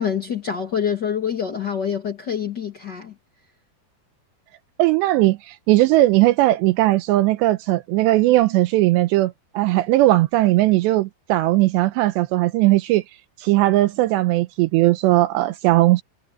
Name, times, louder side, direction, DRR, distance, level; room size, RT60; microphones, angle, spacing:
voice 1, 0.0-3.1, left 8 dB, 65° left, 1.0 m, -26 dB
voice 2, 4.8-13.0 13.4-16.0, right 17 dB, 80° right, 2.9 m, -18 dB
omnidirectional pair, 5.1 m